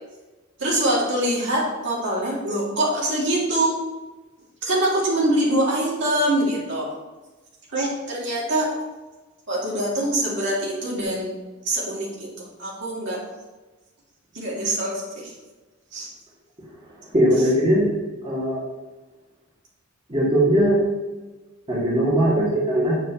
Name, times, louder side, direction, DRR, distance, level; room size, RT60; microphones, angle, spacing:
voice 1, 0.6-3.7 4.6-6.9 7.7-8.7 9.5-11.4 11.6-12.1 12.4-13.2 14.3-15.3 15.9-16.1, right 1 dB, 60° right, -5 dB, 2.4 m, -24 dB
voice 2, 17.1-17.9 18.2-18.6 20.1-20.8 21.7-23.0, right 1 dB, 30° right, -7 dB, 2.3 m, -19 dB
8.1 x 7.0 x 3.0 m, 1.2 s
head